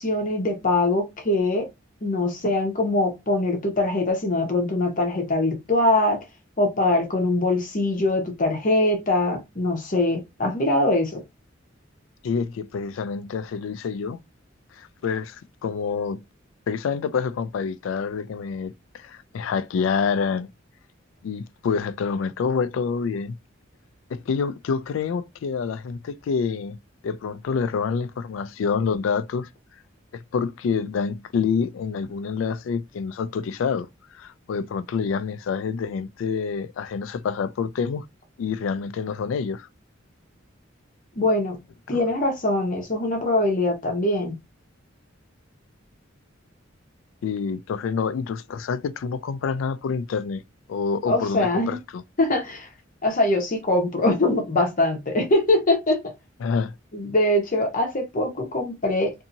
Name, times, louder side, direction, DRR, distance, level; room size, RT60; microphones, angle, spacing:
voice 1, 0.0-1.7 2.0-6.2 6.6-11.2 41.2-41.6 41.9-44.4 51.1-51.8 52.2-52.7 53.0-56.0 56.9-59.1, left 2 dB, 45° left, 0.9 m, -22 dB
voice 2, 12.2-14.2 14.7-16.2 16.7-20.5 21.2-23.4 24.1-26.8 27.0-29.5 30.1-38.1 38.4-39.7 41.9-42.1 47.2-50.4 50.7-52.0 56.4-56.7, left 5 dB, 75° left, 0.3 m, -27 dB
2.7 x 2.7 x 2.6 m
head